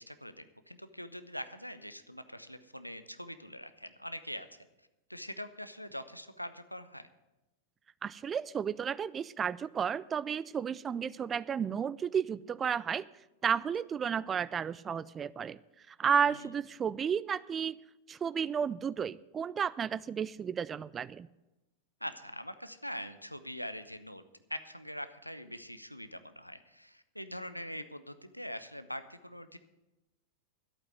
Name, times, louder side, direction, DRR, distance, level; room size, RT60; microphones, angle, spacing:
voice 1, 0.0-4.7 5.1-7.1 16.3-16.5 22.0-24.2 24.5-29.6, equal, 90° left, 11 dB, 0.8 m, -43 dB
voice 2, 8.0-13.1 13.4-15.6 15.9-17.7 18.1-21.3, right 7 dB, 20° right, 19 dB, 0.4 m, -32 dB
11.5 x 8.6 x 7.7 m, 1.0 s
figure-of-eight pair, 90°, 0 cm